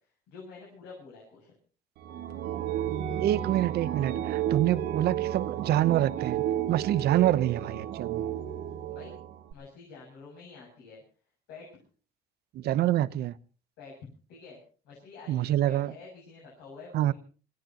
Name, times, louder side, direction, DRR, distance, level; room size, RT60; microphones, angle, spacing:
voice 1, 0.3-1.5 8.9-9.1 9.5-11.0 11.5-11.8 13.8-13.9 14.3-14.6 14.8-17.1, left 4 dB, 90° left, -3 dB, 7.9 m, -48 dB
sound 1, 2.0-9.5, right 11 dB, 85° right, 2.1 m, -32 dB
voice 2, 3.2-8.2 12.5-13.3 15.3-15.9 16.9-17.1, right 13 dB, 70° right, 16 dB, 0.9 m, -26 dB
27.0 x 17.0 x 2.9 m, 0.38 s
cardioid pair, 110°, 17 cm